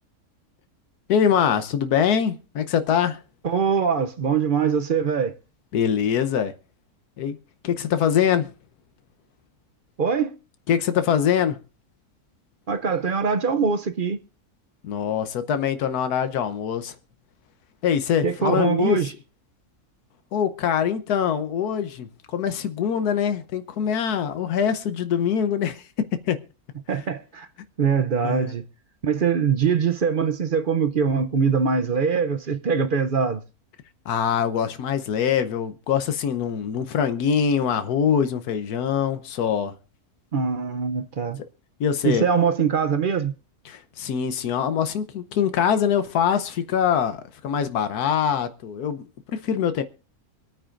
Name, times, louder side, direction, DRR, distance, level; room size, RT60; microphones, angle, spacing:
voice 1, 1.1-3.2 5.7-6.5 7.2-7.4 7.6-8.5 10.7-11.6 14.8-16.9 17.8-19.1 20.3-25.8 26.1-26.4 26.9-27.0 28.2-28.5 34.1-39.7 41.8-42.2 43.6-49.0 49.3-49.8, left 8 dB, 90° left, 1.4 m, -23 dB
voice 2, 3.4-5.3 10.0-10.4 12.7-14.2 18.2-19.1 26.9-27.5 27.8-28.6 29.0-33.4 40.3-41.4 42.0-43.3, right 6 dB, 50° right, 0.6 m, -23 dB
25.0 x 9.1 x 2.5 m
omnidirectional pair, 1.6 m